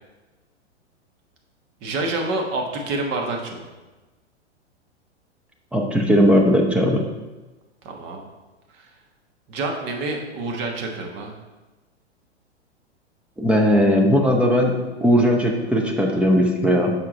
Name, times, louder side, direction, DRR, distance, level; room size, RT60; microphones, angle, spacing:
voice 1, 1.8-3.7 7.8-8.2 8.7-8.9 9.5-11.3, right 2 dB, 30° right, 1 dB, 1.4 m, -28 dB
voice 2, 5.7-7.0 13.4-16.9, equal, 5° right, 0 dB, 0.7 m, -18 dB
7.3 x 5.8 x 4.1 m, 1.2 s
figure-of-eight pair, 105°, 34 cm